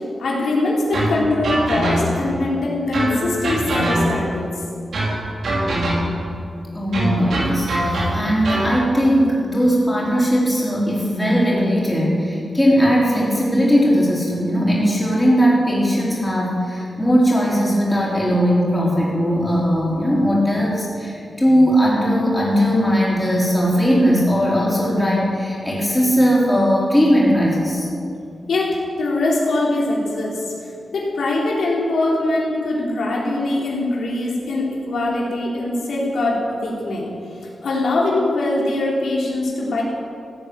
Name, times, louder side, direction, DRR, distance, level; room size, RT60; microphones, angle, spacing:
voice 1, 0.2-4.5 28.5-37.1 37.6-39.8, left 2 dB, 85° left, -4 dB, 3.6 m, -22 dB
sound 1, 0.9-2.3 2.9-4.4 4.9-6.3 6.9-8.8, right 1 dB, 70° right, 3.9 m, -23 dB
voice 2, 6.7-27.9, equal, 5° left, -6 dB, 4.4 m, -18 dB
16.0 x 9.5 x 8.7 m, 2.5 s
wide cardioid pair, 160°, 0 cm